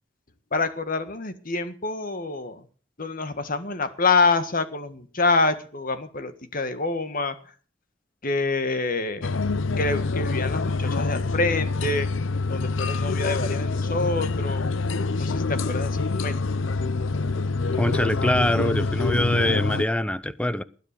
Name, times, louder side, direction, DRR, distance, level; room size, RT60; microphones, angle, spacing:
voice 1, 0.5-2.6 3.0-7.3 8.2-9.3 9.8-12.1 12.5-14.6 15.1-16.4, left 3 dB, 45° left, 1.7 m, -26 dB
sound 1, 9.2-19.8, left 3 dB, 85° left, 0.7 m, -26 dB
voice 2, 17.8-20.6, left 1 dB, 5° left, 0.7 m, -24 dB
20.0 x 10.0 x 6.8 m
head